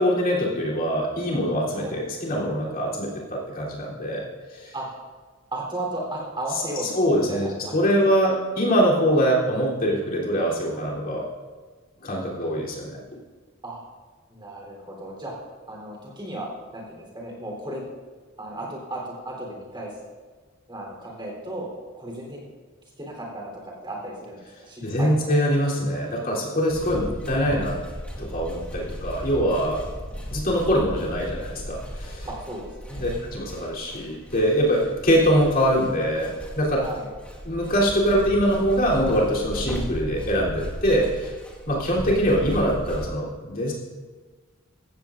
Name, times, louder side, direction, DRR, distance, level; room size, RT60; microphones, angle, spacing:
voice 1, 0.0-4.2 4.5-4.7 6.9-11.3 12.0-13.0 24.8-27.8 28.2-29.8 30.3-32.3 32.9-36.8 37.4-41.3 41.7-43.7, equal, 45° left, -5 dB, 3.3 m, -23 dB
voice 2, 5.5-6.9 7.3-7.8 13.6-13.8 14.3-15.3 15.7-17.9 18.4-20.0 20.7-21.7 22.0-22.5 23.0-25.4 32.2-33.1 36.7-37.1, right 1 dB, 20° right, -2 dB, 3.6 m, -35 dB
sound 1, 26.7-43.1, equal, 5° left, 1.7 m, -36 dB
16.0 x 14.5 x 2.6 m, 1.4 s
head